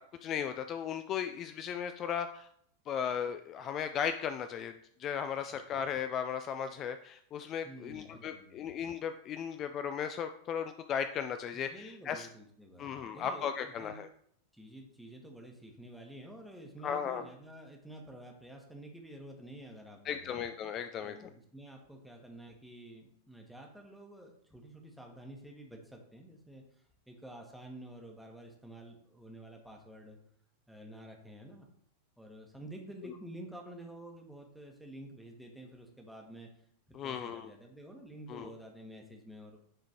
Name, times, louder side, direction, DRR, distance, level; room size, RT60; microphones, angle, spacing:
voice 1, 0.2-2.5 2.9-4.7 5.0-12.3 12.8-14.1 16.8-17.2 20.1-21.3 36.9-37.5 38.3-38.5, left 8 dB, 30° left, 8 dB, 0.3 m, -36 dB
voice 2, 5.5-5.8 7.6-8.7 11.5-14.0 14.5-20.5 21.0-30.2 30.7-31.7 32.2-39.6, right 1 dB, ahead, 1 dB, 1.2 m, -50 dB
9.8 x 3.7 x 2.9 m, 0.67 s
figure-of-eight pair, 90°, 0 cm